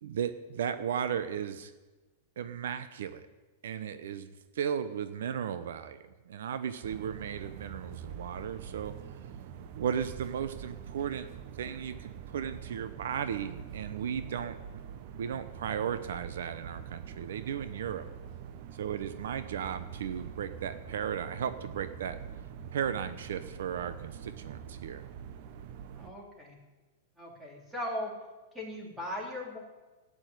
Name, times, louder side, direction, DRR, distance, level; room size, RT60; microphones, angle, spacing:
voice 1, 0.0-1.7 2.4-3.3 3.6-8.9 9.8-11.3 11.6-14.8 15.1-18.1 18.8-22.2 22.7-25.0, right 8 dB, 80° right, 12 dB, 0.8 m, -35 dB
sound 1, 6.8-26.1, right 8 dB, 45° right, 0.9 m, -45 dB
voice 2, 25.9-26.6 27.2-28.1 28.5-29.6, left 1 dB, 5° right, -2 dB, 3.1 m, -38 dB
13.0 x 8.8 x 9.2 m, 1.2 s
supercardioid pair, 155°, 0 cm